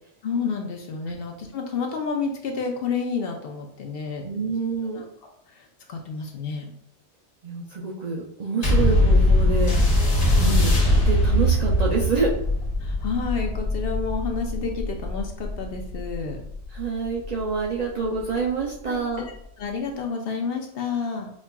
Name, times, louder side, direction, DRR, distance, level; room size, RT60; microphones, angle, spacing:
voice 1, 0.2-4.2 4.9-5.0 5.5-6.7 10.3-10.8 12.8-16.4 18.9-19.3 19.6-21.3, left 5 dB, 65° left, 2 dB, 0.8 m, -30 dB
voice 2, 4.2-5.0 7.4-9.7 10.4-12.3 16.7-19.2, right 4 dB, 55° right, -4 dB, 0.5 m, -27 dB
sound 1, 8.6-17.4 18.2-18.3, left 1 dB, 90° left, 1.4 m, -21 dB
5.1 x 2.4 x 2.2 m, 0.70 s
omnidirectional pair, 1.1 m